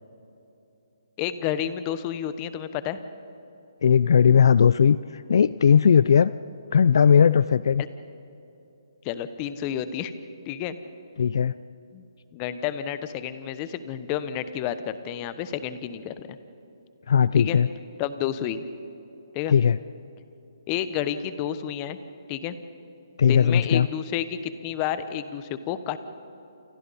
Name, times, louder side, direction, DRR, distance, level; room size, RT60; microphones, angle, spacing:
voice 1, 1.2-3.0 9.0-10.1 10.5-10.8 11.9-12.0 12.3-16.4 17.3-17.6 18.0-18.6 19.3-19.5 20.7-22.0 22.3-22.6 23.2-26.0, left 10 dB, 25° left, 12 dB, 1.0 m, -30 dB
voice 2, 3.8-6.3 6.7-7.8 11.2-11.5 17.1-17.7 19.5-19.8 23.2-23.9, left 7 dB, 60° left, 17 dB, 0.4 m, -18 dB
29.5 x 28.0 x 4.2 m, 2.9 s
hypercardioid pair, 155°, 2 cm